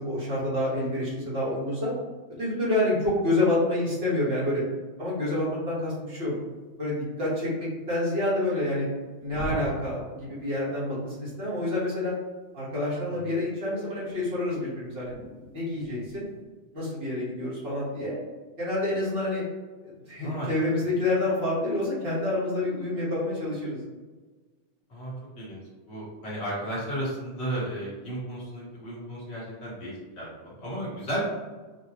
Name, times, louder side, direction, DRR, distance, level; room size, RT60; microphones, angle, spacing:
voice 1, 0.0-1.9 2.4-4.6 5.0-6.3 6.8-8.9 9.2-12.1 12.5-15.1 15.5-16.3 16.7-18.2 18.6-19.4 19.8-23.8, left 1 dB, 55° right, -8 dB, 1.7 m, -28 dB
sound 1, 9.2-11.1 14.1-16.4, equal, 10° left, 0.7 m, -41 dB
voice 2, 24.9-25.6 25.9-31.2, right 1 dB, 65° left, -6 dB, 1.5 m, -34 dB
5.0 x 2.2 x 2.9 m, 1.3 s
omnidirectional pair, 1.2 m